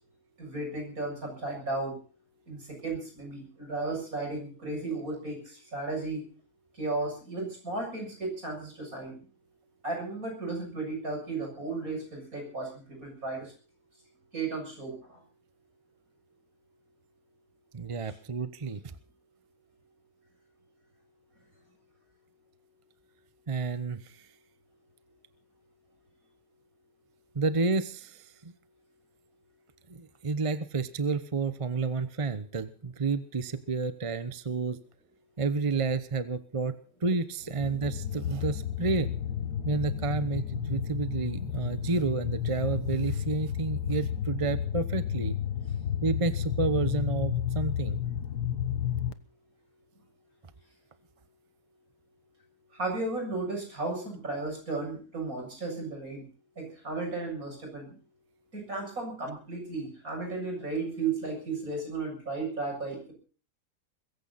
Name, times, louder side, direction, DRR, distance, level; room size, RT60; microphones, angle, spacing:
voice 1, 0.4-2.0 2.5-6.2 6.7-9.3 9.8-13.5 14.3-15.2 18.0-18.2 52.7-56.2 56.6-58.0 58.5-63.1, right 3 dB, 55° right, 2 dB, 7.8 m, -34 dB
voice 2, 17.7-18.9 23.5-24.3 27.3-28.5 29.9-34.8 35.4-39.1 39.6-45.4 46.0-48.0, right 4 dB, 25° right, 13 dB, 0.7 m, -30 dB
sound 1, 37.5-49.1, left 9 dB, 80° left, 1.6 m, -32 dB
22.5 x 15.0 x 4.1 m, 0.39 s
omnidirectional pair, 1.7 m